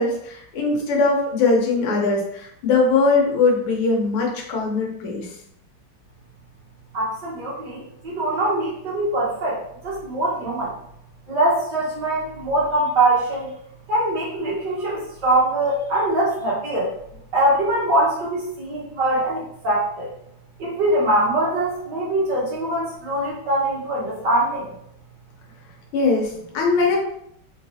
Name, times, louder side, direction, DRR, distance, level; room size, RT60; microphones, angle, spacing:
voice 1, 0.0-5.3 25.9-27.0, left 3 dB, 80° left, 0 dB, 1.8 m, -21 dB
voice 2, 6.9-10.7 11.3-13.5 13.9-16.9 17.3-20.1 20.6-24.7, right 1 dB, 55° right, -6 dB, 1.9 m, -22 dB
4.2 x 4.0 x 2.7 m, 0.72 s
omnidirectional pair, 2.4 m